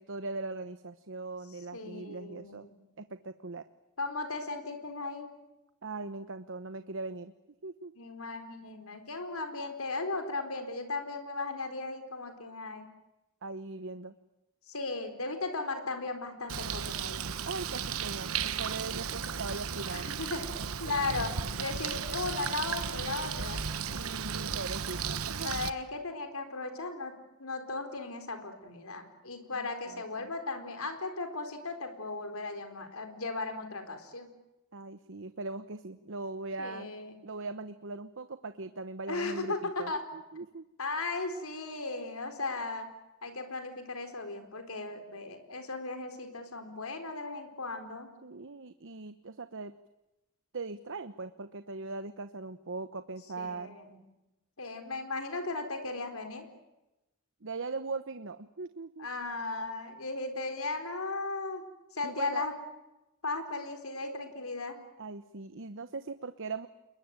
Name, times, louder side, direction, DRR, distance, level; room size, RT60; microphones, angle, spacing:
voice 1, 0.0-2.7 3.0-3.7 5.8-7.3 7.6-7.9 13.4-14.1 17.5-20.1 20.4-21.0 23.9-25.6 29.5-30.3 34.7-36.9 37.2-40.7 48.2-49.7 50.5-53.8 57.4-59.1 62.0-62.4 65.0-66.7, right 3 dB, 65° right, 11 dB, 1.0 m, -40 dB
voice 2, 1.7-2.8 4.0-5.3 8.0-12.9 14.7-17.2 19.7-20.5 20.8-23.6 25.4-27.1 27.4-34.3 36.6-37.2 39.1-40.0 40.8-42.9 43.2-48.1 53.4-53.9 54.6-56.5 59.0-61.6 61.9-62.5 63.2-64.8, left 3 dB, 85° left, 7 dB, 4.1 m, -36 dB
Bird, 16.5-25.7, right 7 dB, 85° right, 1.2 m, -35 dB
29.0 x 22.0 x 9.0 m, 0.98 s
head